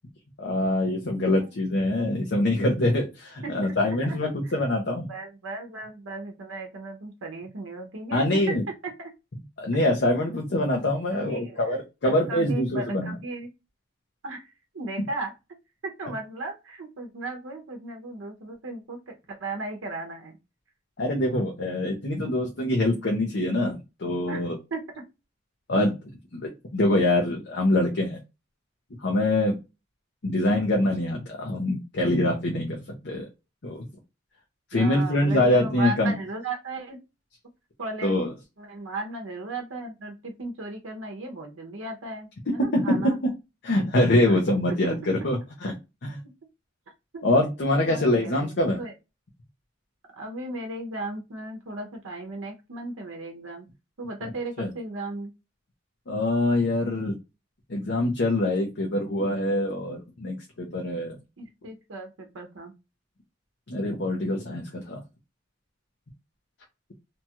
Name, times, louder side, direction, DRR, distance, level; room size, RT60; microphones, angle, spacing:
voice 1, 0.4-5.1 8.1-8.6 9.6-13.1 21.0-24.6 25.7-25.9 26.3-28.2 29.0-29.6 30.2-33.3 33.6-33.8 34.7-36.1 38.0-38.3 42.7-43.1 43.6-45.8 46.0-46.2 47.2-48.8 54.6-54.7 56.1-57.1 57.7-61.2 63.7-65.0, left 1 dB, 60° left, 0 dB, 0.7 m, -24 dB
voice 2, 3.4-4.2 4.4-4.6 5.1-8.6 8.8-9.1 11.1-11.8 12.0-13.5 14.2-15.3 15.8-20.4 24.3-25.0 34.7-37.0 37.8-38.1 38.6-43.2 44.3-44.4 44.8-45.2 47.1-47.2 47.8-48.5 48.8-48.9 50.1-53.7 54.0-55.3 61.4-62.7, right 2 dB, 85° right, 3 dB, 0.7 m, -36 dB
2.8 x 2.3 x 2.8 m, 0.26 s
head